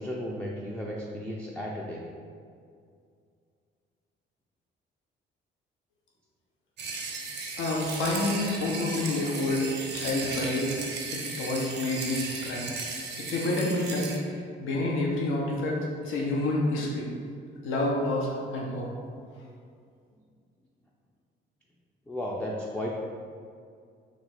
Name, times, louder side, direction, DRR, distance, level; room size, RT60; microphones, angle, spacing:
voice 1, 0.0-2.0 22.1-22.9, left 1 dB, 5° left, -3 dB, 0.3 m, -34 dB
sound 1, 6.8-14.2, right 4 dB, 60° right, 0.6 m, -36 dB
voice 2, 7.6-9.7 9.9-10.8 11.1-12.6 13.2-14.1 14.6-15.8 16.0-17.1 17.6-18.9, left 2 dB, 85° left, -3 dB, 0.6 m, -28 dB
2.9 x 2.2 x 4.2 m, 2.2 s
cardioid pair, 90°, 20 cm